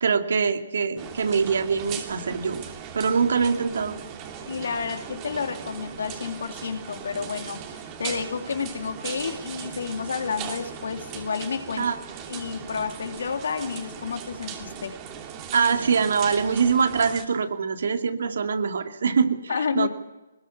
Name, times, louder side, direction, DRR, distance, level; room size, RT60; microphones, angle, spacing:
voice 1, 0.0-2.7 2.9-4.0 11.8-12.0 15.5-19.4 19.7-19.9, right 5 dB, 65° right, 6 dB, 2.4 m, -23 dB
sound 1, 1.0-17.3, right 8 dB, 25° right, 3.0 m, -38 dB
voice 2, 4.5-11.9 12.3-15.0 19.5-19.9, left 5 dB, 70° left, 7 dB, 2.6 m, -30 dB
21.0 x 20.5 x 7.1 m, 1.1 s
hypercardioid pair, 150°, 0 cm